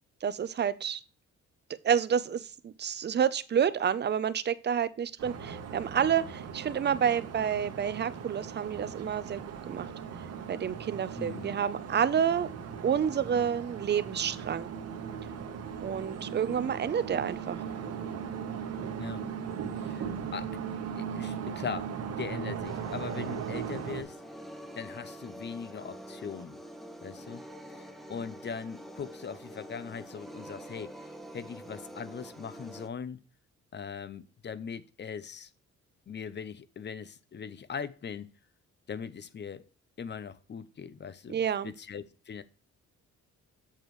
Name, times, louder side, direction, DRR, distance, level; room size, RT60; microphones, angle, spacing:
voice 1, 0.2-1.0 1.8-9.9 10.5-12.5 12.8-14.7 15.8-17.6 41.3-41.7, right 8 dB, 35° right, 0.6 m, -29 dB
sound 1, 5.2-24.0, right 7 dB, 55° right, 1.1 m, -38 dB
voice 2, 11.2-11.5 19.0-19.3 19.8-20.5 21.0-24.2 24.7-26.6 27.0-27.4 28.1-31.1 31.3-33.2 33.7-35.5 36.1-38.3 38.9-39.6 40.0-41.4 41.6-42.4, left 6 dB, 35° left, 0.7 m, -40 dB
sound 2, 22.6-32.9, equal, ahead, 1.1 m, -46 dB
7.3 x 6.8 x 3.1 m
cardioid pair, 90°, 30 cm